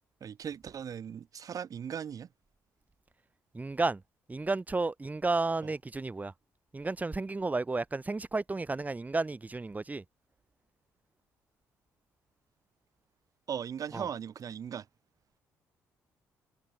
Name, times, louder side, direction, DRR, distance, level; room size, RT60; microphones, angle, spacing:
voice 1, 0.2-2.3 5.6-5.7 13.5-14.9, right 8 dB, 55° right, 4.5 m, -38 dB
voice 2, 3.5-4.0 4.3-6.3 6.7-10.0 13.9-14.1, right 3 dB, 20° right, 1.8 m, -32 dB
supercardioid pair, 60°, 7 cm